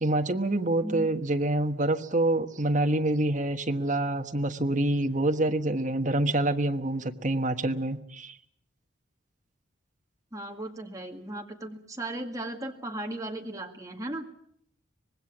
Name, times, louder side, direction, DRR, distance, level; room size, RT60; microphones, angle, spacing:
voice 1, 0.0-8.3, right 1 dB, 35° right, 5 dB, 1.3 m, -26 dB
voice 2, 0.8-1.2 10.3-14.3, right 1 dB, 15° right, 2 dB, 1.9 m, -36 dB
25.0 x 19.5 x 7.4 m, 0.70 s
head